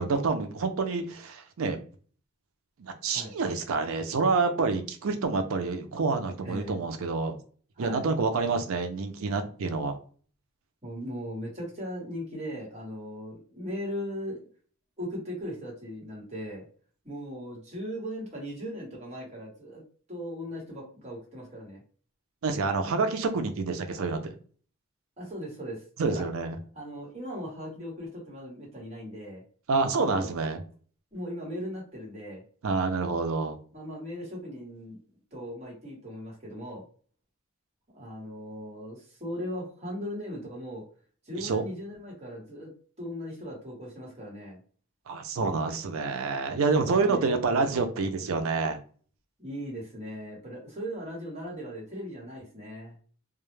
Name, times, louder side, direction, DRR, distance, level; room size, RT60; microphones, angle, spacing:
voice 1, 0.0-1.8 2.8-7.3 7.8-10.0 22.4-24.3 26.0-26.6 29.7-30.6 32.6-33.6 41.4-41.6 45.1-48.8, right 4 dB, 75° right, 6 dB, 0.5 m, -28 dB
voice 2, 6.4-6.8 7.8-8.1 10.8-14.5 15.0-16.6 17.0-19.8 20.1-21.8 25.2-26.2 26.7-29.4 29.8-30.3 31.1-32.4 33.7-35.0 35.3-36.8 37.9-40.8 41.3-42.7 43.0-44.6 46.4-47.2 49.4-53.0, equal, 30° right, -3 dB, 1.2 m, -38 dB
2.2 x 2.0 x 3.1 m, 0.42 s
head